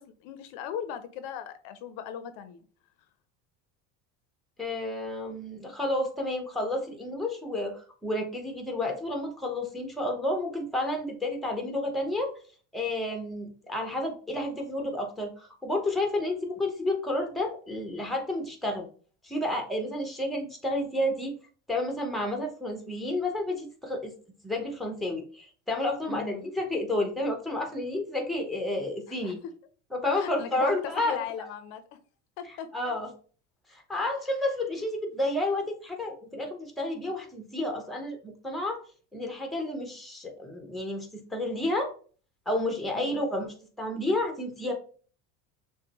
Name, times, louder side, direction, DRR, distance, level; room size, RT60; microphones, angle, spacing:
voice 1, 0.0-2.6 26.1-26.5 29.1-29.5 30.1-31.8 32.4-32.7 42.9-43.2, left 9 dB, 65° left, 0.6 m, -38 dB
voice 2, 4.6-12.3 12.7-18.9 19.2-21.3 21.7-24.1 24.4-29.4 29.9-31.2 32.7-33.1 33.7-38.8 39.1-41.9 42.5-44.7, left 1 dB, ahead, 0.9 m, -31 dB
6.1 x 2.2 x 2.9 m
supercardioid pair, 115°, 38 cm